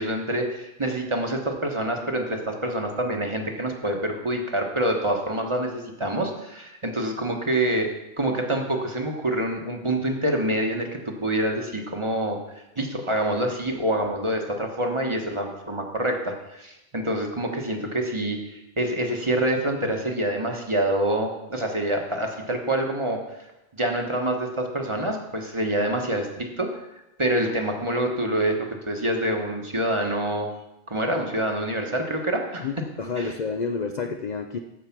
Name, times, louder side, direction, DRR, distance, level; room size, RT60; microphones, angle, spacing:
voice 1, 0.0-7.9 8.2-23.2 23.7-26.8 27.2-30.5 30.9-32.7 33.2-33.3, right 1 dB, 25° right, 2 dB, 1.2 m, -26 dB
voice 2, 32.6-34.6, left 5 dB, 50° left, 5 dB, 0.5 m, -29 dB
14.0 x 4.7 x 5.9 m, 0.93 s
omnidirectional pair, 1.3 m